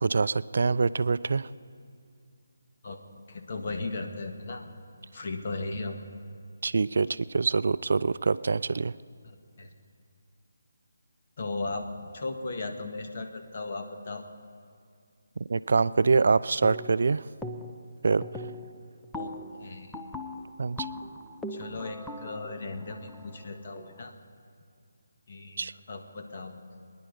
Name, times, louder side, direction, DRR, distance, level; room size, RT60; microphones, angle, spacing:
voice 1, 0.0-1.5 6.6-8.9 15.4-17.2 18.0-18.2 20.6-20.8 25.6-25.7, right 4 dB, 60° right, 17 dB, 0.3 m, -25 dB
voice 2, 3.3-4.7 5.1-6.0 9.2-9.7 11.4-11.9 12.1-14.2 19.1-19.3 19.6-20.0 21.5-24.1 25.3-26.6, left 3 dB, 50° left, 4 dB, 1.6 m, -36 dB
sound 1, 16.6-17.1 17.4-17.9 18.2-24.0, left 1 dB, 5° left, 0.6 m, -40 dB
23.5 x 10.0 x 5.3 m, 2.3 s
figure-of-eight pair, 155°, 0 cm